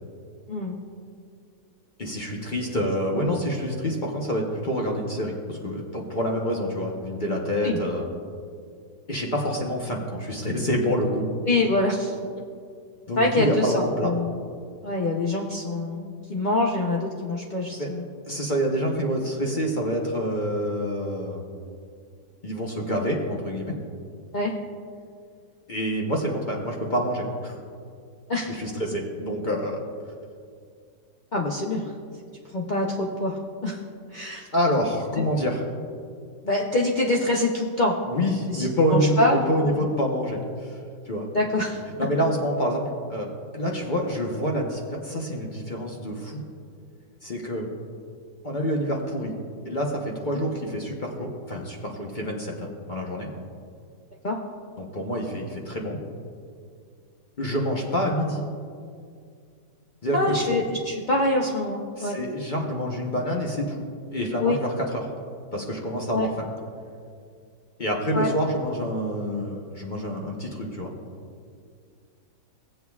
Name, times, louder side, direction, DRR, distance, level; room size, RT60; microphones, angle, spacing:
voice 1, 2.0-8.1 9.1-11.3 13.1-14.1 17.8-17.9 18.2-21.5 22.4-23.7 25.7-27.6 28.5-29.8 34.5-35.6 38.1-40.8 41.1-41.3 42.0-43.3 43.5-46.4 47.2-47.7 48.4-49.3 49.6-53.3 54.8-56.0 57.4-58.4 60.0-60.4 62.0-63.8 64.1-65.1 65.5-66.4 67.8-70.9, equal, 35° left, -1 dB, 0.8 m, -27 dB
voice 2, 11.4-12.2 13.2-14.4 14.8-18.0 24.3-24.5 28.3-28.5 31.3-31.9 32.5-33.8 34.1-34.5 36.4-37.9 38.5-39.8 41.3-41.8 54.2-54.4 60.1-62.2 64.4-64.6 66.1-66.3 68.1-68.3, left 2 dB, 65° left, -2 dB, 0.4 m, -25 dB
17.5 x 7.8 x 2.3 m, 2.2 s
omnidirectional pair, 1.8 m